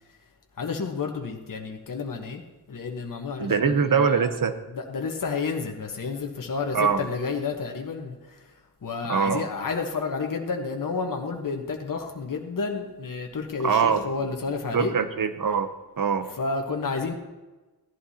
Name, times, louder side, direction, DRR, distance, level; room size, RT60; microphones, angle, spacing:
voice 1, 0.6-2.4 2.7-8.4 8.8-14.9 16.3-17.1, left 4 dB, 55° left, 2 dB, 1.3 m, -31 dB
voice 2, 3.4-4.6 6.7-7.0 9.1-9.5 13.6-14.0 14.7-15.7 16.0-16.3, right 6 dB, 55° right, 9 dB, 0.8 m, -23 dB
15.5 x 11.0 x 2.9 m, 1.1 s
wide cardioid pair, 135°, 40 cm